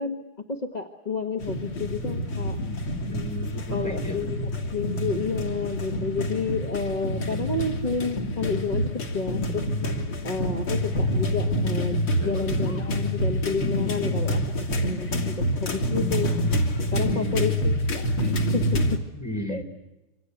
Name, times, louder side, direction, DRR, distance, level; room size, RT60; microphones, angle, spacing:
voice 1, 0.0-2.6 3.7-9.7 10.2-14.4 14.7-16.3 16.9-18.9 19.5-19.6, left 4 dB, 25° left, 3 dB, 1.3 m, -30 dB
sound 1, 1.4-19.0, equal, 80° left, 3.6 m, -27 dB
voice 2, 3.1-4.3 9.8-10.2 12.2-12.4 16.9-17.3 19.1-19.6, left 1 dB, 10° left, 2 dB, 4.0 m, -34 dB
26.5 x 26.0 x 8.0 m, 1.0 s
omnidirectional pair, 2.3 m